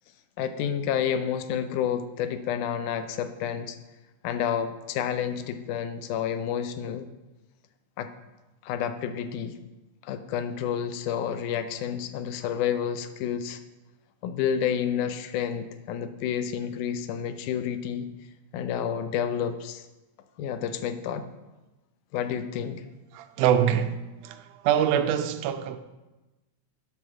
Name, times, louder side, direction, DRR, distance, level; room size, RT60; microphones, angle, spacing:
voice 1, 0.4-3.8 4.2-7.1 8.0-8.1 8.6-9.6 10.0-13.6 14.2-18.1 18.5-19.8 20.4-21.2 22.1-22.8, left 8 dB, 85° left, 2.2 m, -29 dB
voice 2, 23.1-25.8, right 9 dB, 85° right, 2.1 m, -25 dB
8.1 x 5.6 x 6.1 m
omnidirectional pair, 3.5 m